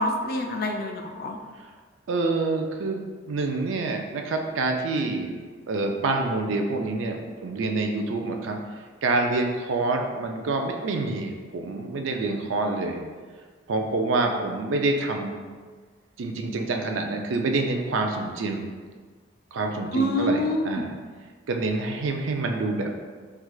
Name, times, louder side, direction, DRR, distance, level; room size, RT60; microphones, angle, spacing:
voice 1, 0.0-1.4 19.9-20.8, left 1 dB, 50° left, 3 dB, 0.4 m, -26 dB
voice 2, 2.1-5.3 5.7-8.6 9.0-13.0 13.7-15.4 16.2-18.7 19.5-20.9 21.5-22.9, right 3 dB, 85° right, 3 dB, 0.4 m, -27 dB
4.4 x 2.4 x 2.3 m, 1.5 s
head